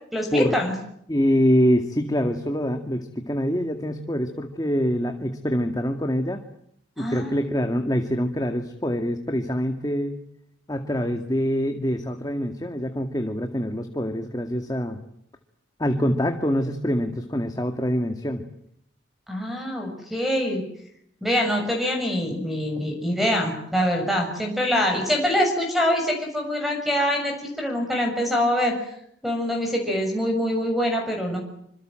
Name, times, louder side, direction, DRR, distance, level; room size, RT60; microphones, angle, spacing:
voice 1, 0.1-0.7 7.0-7.3 19.3-20.6 21.2-28.8 29.2-31.4, equal, ahead, 2 dB, 6.8 m, -24 dB
voice 2, 1.1-6.4 7.0-10.2 10.7-15.0 15.8-18.4, equal, 20° left, 5 dB, 2.1 m, -25 dB
27.5 x 26.5 x 7.8 m, 0.71 s
head